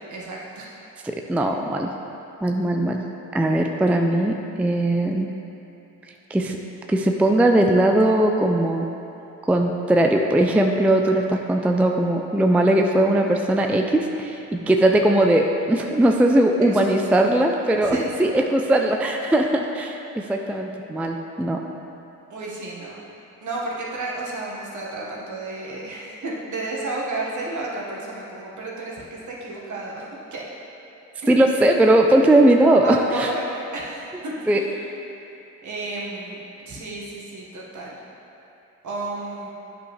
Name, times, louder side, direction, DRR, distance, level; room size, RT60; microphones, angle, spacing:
voice 1, 0.1-0.7 16.7-17.4 17.8-18.1 22.3-23.0 23.4-30.0 30.3-30.5 31.2-31.6 32.8-34.9 35.6-36.4 36.6-38.0 38.8-39.5, right 2 dB, 55° right, -4 dB, 1.6 m, -32 dB
voice 2, 1.0-1.9 2.4-3.0 3.3-5.3 6.3-6.6 6.9-8.9 9.5-21.6 31.3-33.3 34.5-34.6, right 1 dB, 5° right, 2 dB, 0.4 m, -19 dB
8.6 x 5.5 x 3.3 m, 2.9 s
supercardioid pair, 60°, 35 cm